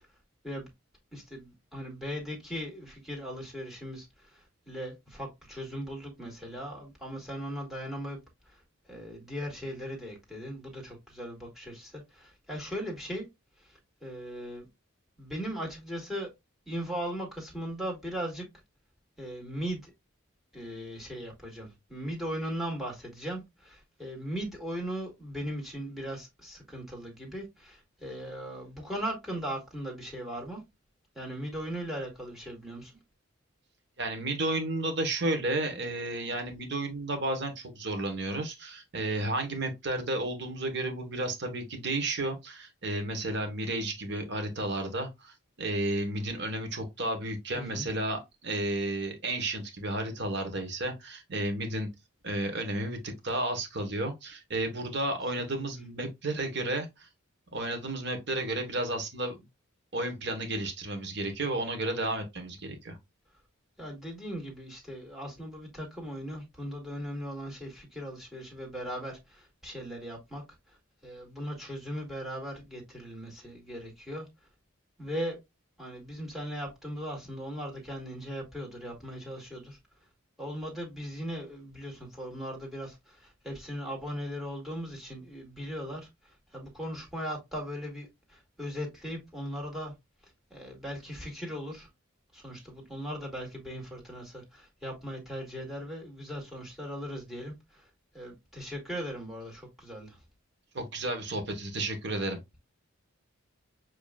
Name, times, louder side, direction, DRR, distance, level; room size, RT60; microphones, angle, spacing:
voice 1, 1.1-8.2 8.5-13.2 13.6-14.7 15.2-16.3 16.7-18.4 19.2-19.9 20.5-30.6 31.1-32.9 47.6-47.9 63.8-70.4 70.7-70.8 71.0-74.3 75.0-75.4 75.8-79.8 80.4-89.9 90.5-91.9 92.3-100.2, equal, ahead, 2.2 m, -38 dB
voice 2, 34.0-51.9 52.2-57.1 57.5-59.4 59.9-63.0 100.7-102.4, right 2 dB, 55° right, 1.2 m, -32 dB
7.3 x 3.0 x 2.4 m
head